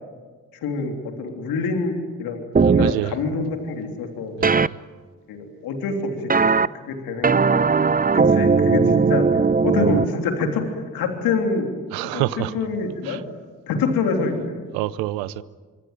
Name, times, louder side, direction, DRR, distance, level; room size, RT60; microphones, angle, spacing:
voice 1, 0.6-2.4 2.7-4.3 5.3-6.3 6.8-7.7 8.1-10.6 10.9-11.7 12.1-12.2 12.5-13.2 13.7-14.6, left 4 dB, 80° left, 3.4 m, -26 dB
sound 1, 2.6-2.9 4.4-4.7 6.3-6.7 7.2-10.1, right 5 dB, 25° right, 0.8 m, -18 dB
voice 2, 2.6-3.2 4.4-4.7 11.9-12.5 13.0-13.2 14.7-15.4, right 16 dB, 85° right, 0.8 m, -27 dB
25.0 x 24.5 x 9.3 m
hypercardioid pair, 40°, 35 cm